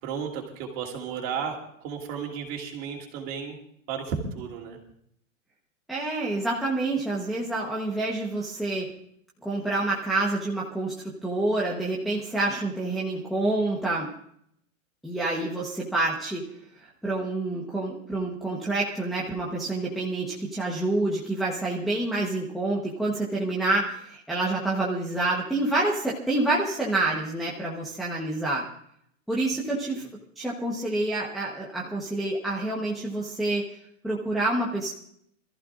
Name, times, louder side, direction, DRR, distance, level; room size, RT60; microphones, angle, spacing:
voice 1, 0.0-3.6 3.9-4.8 29.9-30.0, right 6 dB, 30° right, 1 dB, 3.0 m, -33 dB
voice 2, 5.9-8.9 9.4-14.1 15.0-16.4 16.8-28.7 29.3-30.1 30.4-33.7 34.0-34.9, right 2 dB, ahead, -6 dB, 1.0 m, -28 dB
26.0 x 14.5 x 2.5 m, 0.69 s
hypercardioid pair, 165°, 40 cm